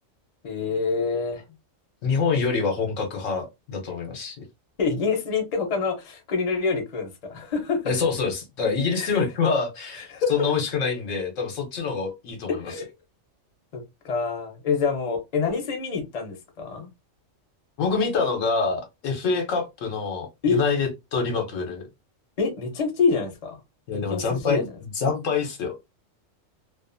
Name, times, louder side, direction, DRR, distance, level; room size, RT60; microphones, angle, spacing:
voice 1, 0.4-1.4 4.8-7.8 9.0-9.2 10.1-10.5 12.5-12.9 13.7-16.9 20.4-20.6 22.4-23.6 24.1-24.6, left 5 dB, 35° left, 0.7 m, -26 dB
voice 2, 2.0-4.4 7.8-12.7 17.8-21.8 23.9-24.7 24.9-25.7, left 5 dB, 75° left, 1.1 m, -26 dB
2.5 x 2.4 x 2.5 m
omnidirectional pair, 1.4 m